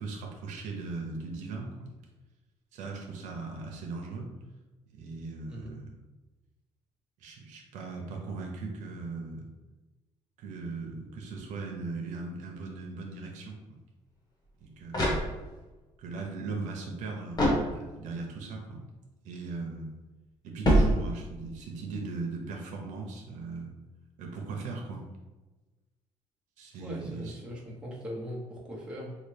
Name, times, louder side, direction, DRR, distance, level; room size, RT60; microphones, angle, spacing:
voice 1, 0.0-1.9 2.7-4.3 4.9-5.9 7.2-9.4 10.4-13.6 14.6-15.3 16.0-18.8 19.2-19.9 20.4-23.7 24.2-25.0 26.6-27.4, right 3 dB, 85° right, 0 dB, 0.7 m, -38 dB
sound 1, 14.5-15.8 17.3-18.2 20.6-21.5, equal, 30° left, 1.2 m, -27 dB
voice 2, 26.8-29.2, equal, 5° right, -4 dB, 1.0 m, -40 dB
4.0 x 2.3 x 3.2 m, 1.2 s
cardioid pair, 105°, 12 cm